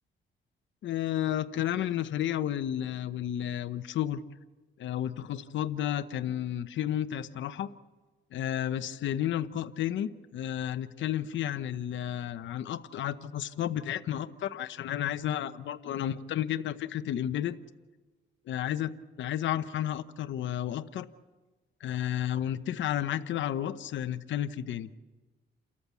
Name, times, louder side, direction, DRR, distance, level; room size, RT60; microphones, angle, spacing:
voice 1, 0.8-4.2 4.8-7.7 8.3-17.6 18.5-21.1 21.8-24.9, left 11 dB, 70° left, 11 dB, 0.9 m, -32 dB
28.5 x 14.0 x 8.4 m, 1.2 s
cardioid pair, 90°, 20 cm